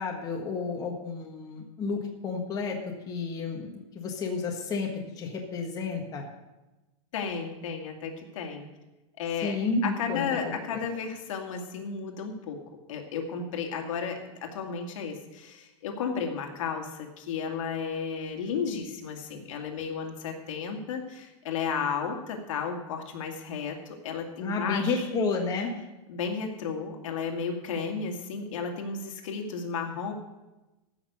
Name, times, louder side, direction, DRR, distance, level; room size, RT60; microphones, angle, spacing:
voice 1, 0.0-2.8 3.1-6.2 9.4-10.3 10.7-10.8 24.4-25.7, left 4 dB, 20° left, 0 dB, 1.5 m, -31 dB
voice 2, 7.1-8.7 9.2-9.6 9.8-12.6 12.9-23.8 24.0-25.1 26.1-30.1, left 6 dB, 70° left, 3 dB, 2.2 m, -33 dB
14.5 x 6.0 x 6.7 m, 1.0 s
supercardioid pair, 155°, 17 cm